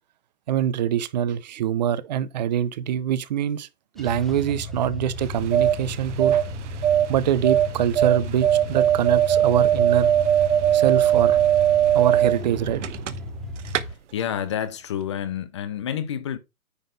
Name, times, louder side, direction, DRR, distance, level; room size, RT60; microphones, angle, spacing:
voice 1, 0.5-3.7 4.0-6.4 7.1-10.1 10.7-11.6 11.9-12.8, right 10 dB, 30° right, 0.7 m, -24 dB
sound 1, 4.0-13.9, left 2 dB, ahead, 0.9 m, -35 dB
sound 2, 5.2-13.4 13.7-13.8, right 10 dB, 55° right, 1.0 m, -20 dB
voice 2, 14.1-16.4, left 9 dB, 20° left, 0.5 m, -29 dB
9.6 x 4.0 x 5.1 m
hypercardioid pair, 145°, 43 cm